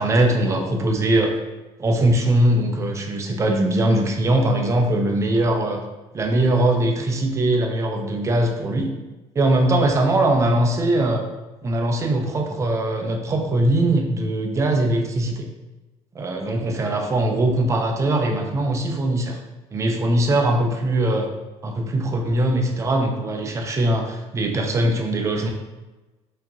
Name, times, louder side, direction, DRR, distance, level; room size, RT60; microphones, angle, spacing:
voice 1, 0.0-1.3 1.8-5.8 6.1-8.9 9.4-11.2 11.6-15.5 16.1-19.4 19.7-21.3 21.6-25.5, right 1 dB, 25° right, 3 dB, 0.5 m, -21 dB
4.5 x 2.8 x 2.7 m, 1.1 s
cardioid pair, 145°, 12 cm